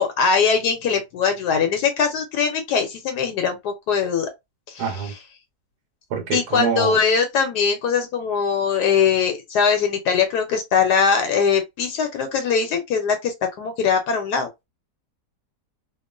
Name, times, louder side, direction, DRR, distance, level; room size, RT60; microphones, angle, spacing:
voice 1, 0.0-4.3 4.7-4.8 6.3-14.5, left 6 dB, 80° left, 1.2 m, -21 dB
voice 2, 4.8-5.1 6.1-7.0, right 5 dB, 70° right, 1.3 m, -25 dB
2.9 x 2.4 x 2.4 m
omnidirectional pair, 1.8 m